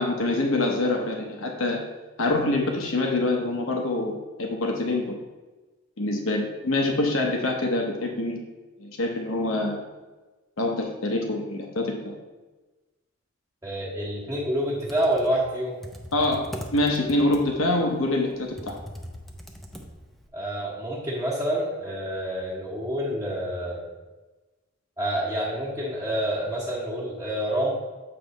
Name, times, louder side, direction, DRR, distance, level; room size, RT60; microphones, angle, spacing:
voice 1, 0.0-1.8 2.2-5.1 6.0-8.4 8.8-9.8 10.6-12.1 16.1-18.8, left 2 dB, 80° left, 1 dB, 0.9 m, -25 dB
voice 2, 13.6-15.8 20.3-23.8 25.0-27.7, right 1 dB, 15° right, -6 dB, 1.1 m, -28 dB
Computer keyboard, 14.7-20.3, equal, ahead, 0.6 m, -41 dB
7.7 x 3.4 x 5.2 m, 1.2 s
head